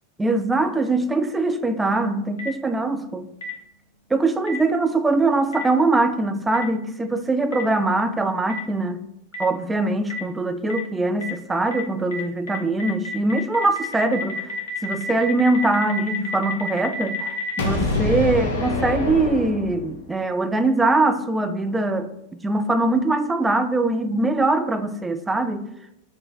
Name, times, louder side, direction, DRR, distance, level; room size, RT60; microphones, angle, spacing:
voice 1, 0.2-3.3 4.1-9.0 9.4-22.1 22.4-25.7, right 2 dB, 10° right, 0.3 m, -22 dB
Boom, 2.4-2.5 3.4-3.5 4.5-4.6 5.5-5.6 6.5-6.6 7.5-7.6 8.5-8.6 9.3-9.4 10.1-10.2 10.7-10.8 11.2-11.3 11.7-11.8 12.1-12.2 12.5-20.0, left 2 dB, 60° left, 0.7 m, -28 dB
4.5 x 2.1 x 4.6 m
figure-of-eight pair, 90°, 0 cm